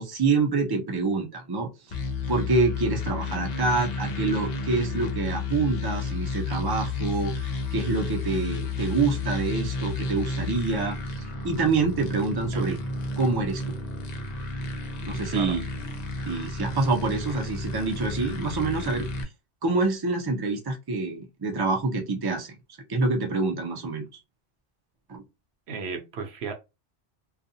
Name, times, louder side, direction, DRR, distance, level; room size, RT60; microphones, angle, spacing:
voice 1, 0.0-2.0 2.3-12.8 13.2-13.7 15.0-15.6 16.3-19.1 19.6-22.6 22.9-24.0 25.1-25.2, right 3 dB, 30° right, 0.4 m, -26 dB
sound 1, 1.9-19.2, left 3 dB, 60° left, 0.4 m, -32 dB
voice 2, 25.7-26.5, right 5 dB, 65° right, 0.8 m, -34 dB
2.4 x 2.3 x 2.6 m
omnidirectional pair, 1.3 m